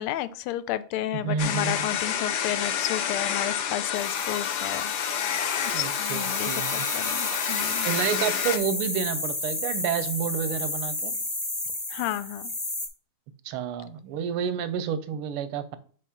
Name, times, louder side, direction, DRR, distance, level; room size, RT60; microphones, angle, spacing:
voice 1, 0.0-4.9 5.3-7.9 11.9-12.5, left 13 dB, 85° left, 14 dB, 1.5 m, -32 dB
voice 2, 1.2-1.9 5.7-6.8 7.8-11.1 13.4-15.8, right 8 dB, 90° right, 13 dB, 1.6 m, -29 dB
sound 1, 1.4-8.6, left 8 dB, 65° left, 1.1 m, -29 dB
sound 2, 3.9-12.9, left 2 dB, 20° left, 0.7 m, -32 dB
5.0 x 4.7 x 5.6 m, 0.43 s
omnidirectional pair, 2.3 m